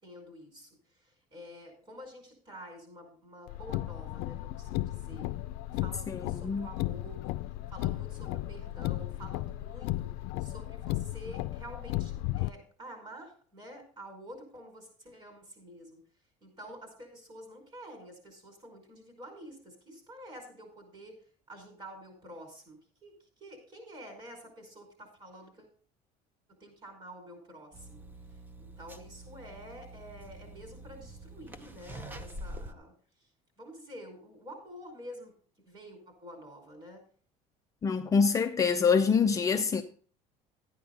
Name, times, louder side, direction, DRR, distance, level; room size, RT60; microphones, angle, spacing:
voice 1, 0.0-5.3 5.7-7.2 7.7-10.1 10.4-16.0 16.4-21.2 21.5-25.7 26.5-32.9 33.2-33.3 33.6-35.3 35.6-37.0, equal, 30° right, 5.2 m, -49 dB
Car, 3.5-12.5, left 16 dB, 80° left, 0.5 m, -35 dB
voice 2, 6.1-6.7 37.8-39.8, left 5 dB, 20° left, 0.5 m, -25 dB
sound 1, 27.7-32.7, right 1 dB, 10° right, 0.7 m, -46 dB
12.5 x 9.6 x 3.9 m
cardioid pair, 155°, 16 cm